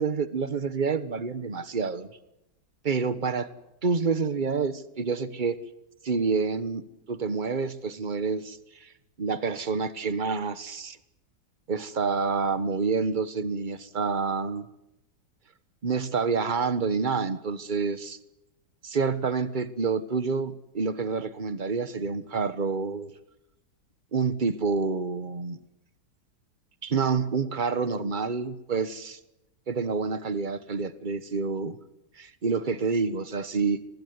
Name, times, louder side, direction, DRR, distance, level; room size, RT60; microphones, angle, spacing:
voice 1, 0.0-2.2 2.8-3.5 3.8-5.6 6.0-6.8 7.1-8.9 9.2-11.0 11.7-14.6 15.8-18.2 18.8-23.1 24.1-25.6 26.8-29.2 29.7-31.8 32.2-33.8, right 5 dB, 30° right, 14 dB, 1.2 m, -28 dB
24.0 x 19.5 x 9.5 m, 0.88 s
omnidirectional pair, 1.9 m